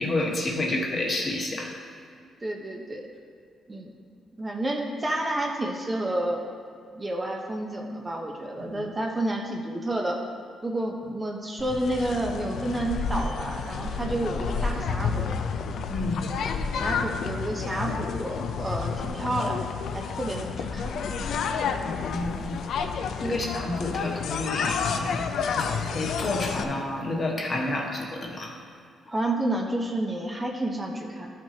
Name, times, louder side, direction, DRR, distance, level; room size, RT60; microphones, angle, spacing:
voice 1, 0.0-1.7 8.6-8.8 15.9-16.2 21.8-22.5 23.2-28.6, left 2 dB, 35° left, -1 dB, 1.2 m, -30 dB
voice 2, 2.4-3.1 3.7-3.9 4.4-6.4 6.9-10.2 10.6-15.4 16.8-19.6 19.9-20.9 23.2-23.5 29.1-31.3, right 1 dB, 20° right, 1 dB, 0.7 m, -30 dB
sound 1, 11.6-26.6, left 5 dB, 70° left, 0.4 m, -30 dB
12.0 x 5.9 x 2.8 m, 2.3 s
cardioid pair, 125°, 0 cm